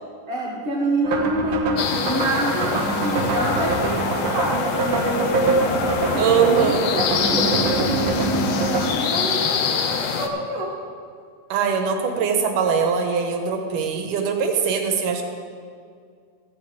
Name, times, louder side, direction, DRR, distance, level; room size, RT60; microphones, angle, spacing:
voice 1, 0.3-10.7, right 1 dB, 45° right, -7 dB, 2.2 m, -27 dB
sound 1, 1.0-8.9, right 3 dB, 65° right, 1.2 m, -24 dB
sound 2, 1.8-10.3, left 6 dB, 70° left, 1.7 m, -25 dB
voice 2, 6.2-6.9 11.5-15.2, right 6 dB, 85° right, 4 dB, 2.7 m, -21 dB
14.0 x 5.1 x 8.6 m, 2.1 s
omnidirectional pair, 3.6 m